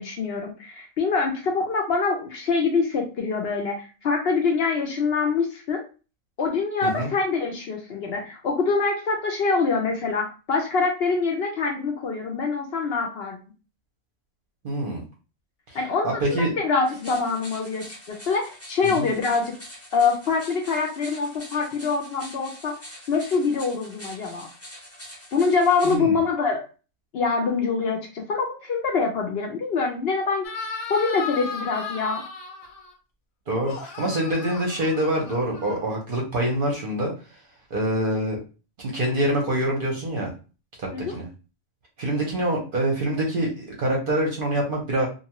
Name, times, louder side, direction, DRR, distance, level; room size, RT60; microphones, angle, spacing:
voice 1, 0.0-5.8 6.4-13.4 15.7-19.5 19.9-22.7 23.1-24.5 25.3-26.6 27.1-30.5 30.9-32.2 40.9-41.2, left 4 dB, 60° left, 1 dB, 0.7 m, -25 dB
voice 2, 14.6-15.0 15.7-15.8 16.2-16.5 18.8-19.1 25.8-26.2 33.5-37.1 37.7-38.4 38.8-40.3 40.8-41.3 42.0-45.1, right 1 dB, 50° right, 0 dB, 0.7 m, -25 dB
sound 1, 16.8-26.0, equal, 15° left, 0.5 m, -44 dB
sound 2, 30.4-32.9 33.6-36.1, left 5 dB, 90° left, 1.1 m, -36 dB
2.6 x 2.2 x 2.9 m, 0.33 s
omnidirectional pair, 1.3 m